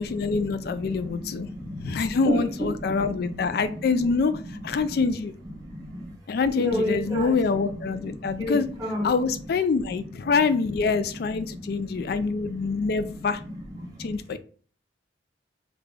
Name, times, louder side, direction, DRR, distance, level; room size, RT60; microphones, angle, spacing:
voice 1, 0.0-1.5 1.8-5.3 6.3-8.7 9.0-13.4 14.0-14.4, left 4 dB, 50° left, 0.3 m, -25 dB
voice 2, 6.6-7.3 8.4-9.1, equal, 20° right, 0.9 m, -27 dB
3.2 x 2.4 x 3.6 m
head